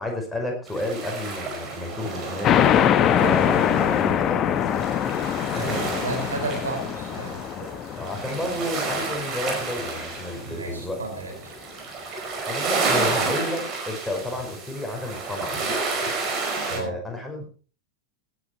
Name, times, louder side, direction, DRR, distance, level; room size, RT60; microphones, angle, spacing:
voice 1, 0.0-2.7 3.2-4.8 5.5-5.8 8.0-11.0 12.4-15.6 16.7-17.5, left 1 dB, 5° left, 1 dB, 5.0 m, -31 dB
sound 1, 0.7-16.8, right 3 dB, 30° right, 5.4 m, -31 dB
sound 2, 2.4-9.6, left 9 dB, 30° left, 1.1 m, -23 dB
voice 2, 5.6-7.4 10.5-11.5 16.7-17.0, right 3 dB, 70° right, 4 dB, 5.1 m, -33 dB
17.5 x 10.5 x 4.5 m, 0.39 s
figure-of-eight pair, 90°, 0 cm